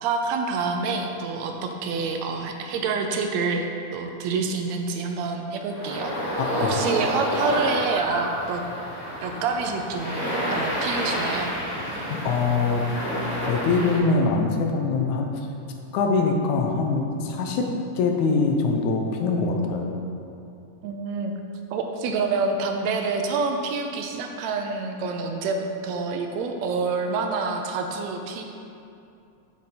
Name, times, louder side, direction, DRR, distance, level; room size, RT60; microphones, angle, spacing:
voice 1, 0.0-6.1 6.6-8.6 9.2-10.2 10.5-11.5 20.8-21.3 21.7-28.4, right 4 dB, 75° right, 4 dB, 1.8 m, -27 dB
sound 1, 5.7-14.0, equal, 25° left, 2.1 m, -29 dB
voice 2, 6.4-6.8 12.1-12.9 13.5-15.4 15.9-20.0, left 4 dB, 80° left, 2 dB, 2.1 m, -23 dB
7.6 x 6.8 x 4.2 m, 2.6 s
omnidirectional pair, 3.4 m